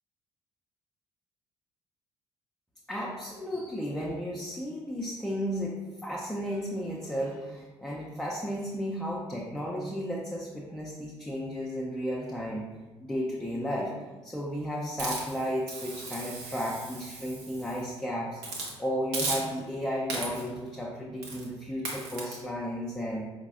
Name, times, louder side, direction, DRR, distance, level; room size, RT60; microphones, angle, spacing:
voice 1, 2.9-12.7 13.0-13.9 14.2-23.3, equal, 5° left, -4 dB, 0.4 m, -34 dB
Hiss, 15.0-17.9 18.4-18.7 19.1-19.7 20.1-20.6 21.2-21.5 21.9-22.3, right 3 dB, 70° right, 0.7 m, -36 dB
4.6 x 2.1 x 2.4 m, 1.2 s
figure-of-eight pair, 50°, 14 cm